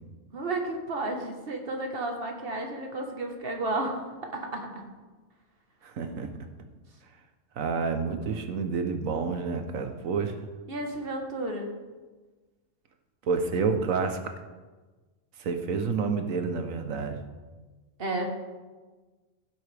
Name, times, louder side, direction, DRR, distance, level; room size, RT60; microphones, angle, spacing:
voice 1, 0.3-4.0 4.3-4.8 10.7-11.7 18.0-18.3, right 2 dB, 45° right, 3 dB, 1.6 m, -32 dB
voice 2, 5.8-6.3 7.6-10.5 13.2-14.3 15.4-17.2, right 5 dB, 90° right, 7 dB, 1.4 m, -29 dB
15.5 x 7.8 x 3.4 m, 1.3 s
omnidirectional pair, 1.4 m